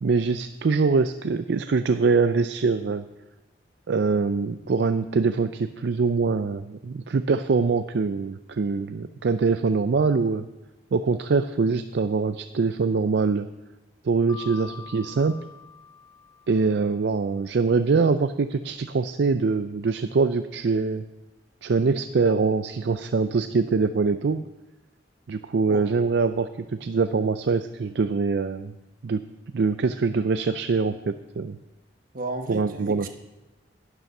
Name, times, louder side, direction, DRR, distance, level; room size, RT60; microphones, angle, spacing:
voice 1, 0.0-3.1 3.9-10.5 10.9-13.5 14.0-15.4 16.5-21.1 21.6-24.4 25.3-28.7 29.0-29.3 29.5-31.6 32.5-33.1, right 4 dB, 65° right, 10 dB, 0.4 m, -23 dB
Mallet percussion, 14.3-17.1, left 8 dB, 15° left, 0.7 m, -45 dB
voice 2, 32.1-33.1, right 2 dB, 50° right, 5 dB, 1.2 m, -33 dB
12.0 x 9.6 x 5.4 m, 1.1 s
head